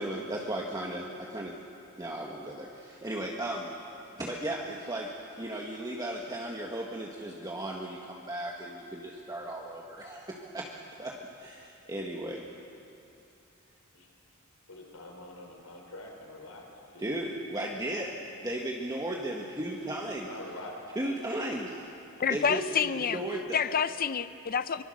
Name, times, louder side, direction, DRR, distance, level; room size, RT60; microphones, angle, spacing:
voice 1, 0.0-1.5 2.0-3.7 4.2-5.1 5.4-10.7 11.0-12.5 17.0-18.1 18.4-20.4 20.9-21.9 22.3-23.6, right 1 dB, 15° right, -1 dB, 1.5 m, -35 dB
voice 2, 14.7-16.6 16.9-17.2 20.2-20.8, left 1 dB, 85° left, 1 dB, 4.9 m, -45 dB
voice 3, 22.2-23.2 23.5-24.8, left 7 dB, 40° left, 14 dB, 0.5 m, -28 dB
24.0 x 23.5 x 6.5 m, 2.7 s
head